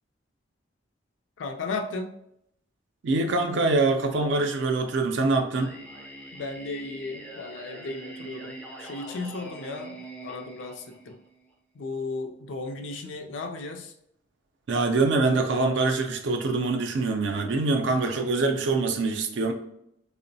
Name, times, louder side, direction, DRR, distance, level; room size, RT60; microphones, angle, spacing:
voice 1, 1.4-2.1 6.3-11.2 11.7-13.9, left 3 dB, 80° left, 5 dB, 0.4 m, -35 dB
voice 2, 3.0-5.7 14.7-19.5, right 3 dB, 70° right, 4 dB, 0.4 m, -24 dB
Singing, 5.5-11.5, right 1 dB, 5° left, 0.3 m, -43 dB
2.9 x 2.0 x 2.6 m, 0.75 s
head